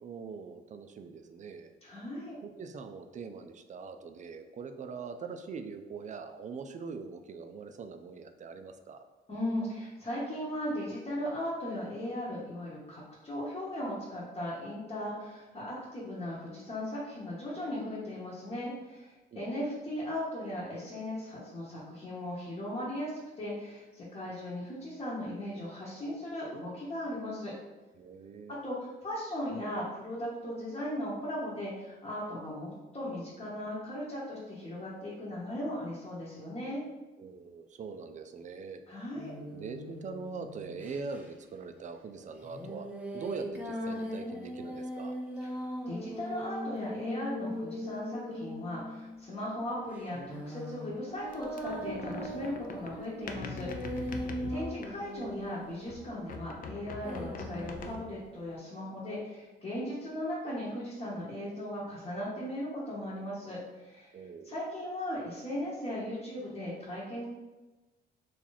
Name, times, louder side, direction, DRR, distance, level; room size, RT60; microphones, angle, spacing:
voice 1, 0.0-1.7 2.4-9.0 19.3-19.4 28.0-28.6 37.2-39.1 39.5-42.9 43.1-45.1 54.3-54.7 64.1-64.5, right 5 dB, 40° right, 7 dB, 0.4 m, -43 dB
voice 2, 1.8-2.4 9.3-27.5 28.5-36.8 38.9-39.3 45.5-64.1 64.4-67.2, left 1 dB, 30° left, -8 dB, 1.0 m, -37 dB
sound 1, 39.1-41.2 42.4-49.2 49.9-56.3 57.0-58.0, equal, 5° right, 0.7 m, -40 dB
sound 2, 51.3-55.5 55.9-58.3, left 4 dB, 45° left, 0.4 m, -42 dB
2.9 x 2.5 x 3.9 m, 1.1 s
cardioid pair, 90°, 20 cm